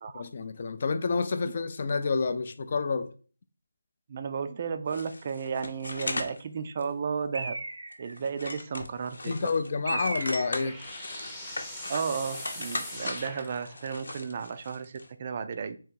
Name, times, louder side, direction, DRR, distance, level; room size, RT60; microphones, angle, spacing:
voice 1, 0.1-3.1 9.3-10.8, left 4 dB, 40° left, 0.4 m, -29 dB
voice 2, 4.1-7.5 8.0-9.5 9.9-10.0 11.9-15.8, right 6 dB, 30° right, 0.4 m, -33 dB
sound 1, 4.9-6.4 6.8-6.9 7.4-7.6 7.9-9.7 10.0-15.1, left 2 dB, 75° left, 0.8 m, -38 dB
Bird, 7.3-8.2 9.9-10.8, right 2 dB, 80° right, 0.6 m, -35 dB
sound 2, 9.6-14.1, left 1 dB, 5° left, 0.6 m, -43 dB
3.7 x 3.0 x 4.5 m
figure-of-eight pair, 170°, 0 cm